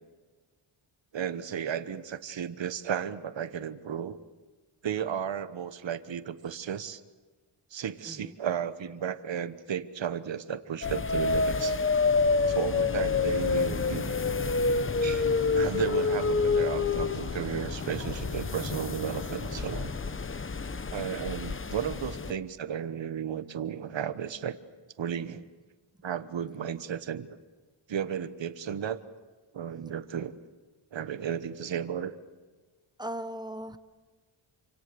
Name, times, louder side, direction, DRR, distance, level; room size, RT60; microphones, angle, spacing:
voice 1, 1.1-4.2 4.8-7.0 7.7-11.8 12.3-14.2 15.0-15.3 15.5-19.9 20.9-24.6 25.0-25.4 26.0-27.3 27.9-29.0 29.5-30.3 30.9-32.1, right 8 dB, 65° right, 12 dB, 1.2 m, -34 dB
voice 2, 8.1-8.4 22.3-22.4 33.0-33.8, right 1 dB, 10° right, 11 dB, 1.1 m, -38 dB
sound 1, 10.8-22.3, left 4 dB, 25° left, 0.8 m, -28 dB
sound 2, 12.0-19.9, left 2 dB, 75° left, 4.6 m, -41 dB
27.5 x 25.5 x 6.9 m, 1.4 s
wide cardioid pair, 115°, 48 cm